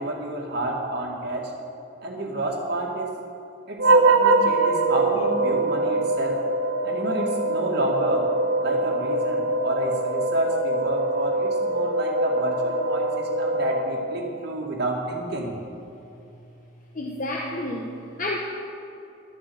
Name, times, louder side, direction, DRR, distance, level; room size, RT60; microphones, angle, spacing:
voice 1, 0.0-1.5 2.0-3.2 3.7-6.4 6.8-8.3 8.6-15.6, right 1 dB, 55° right, -1 dB, 2.0 m, -29 dB
sound 1, 3.8-14.3, right 2 dB, 75° right, 0.9 m, -23 dB
voice 2, 16.9-18.4, left 1 dB, 45° left, -1 dB, 1.0 m, -30 dB
12.5 x 7.5 x 7.9 m, 2.8 s
head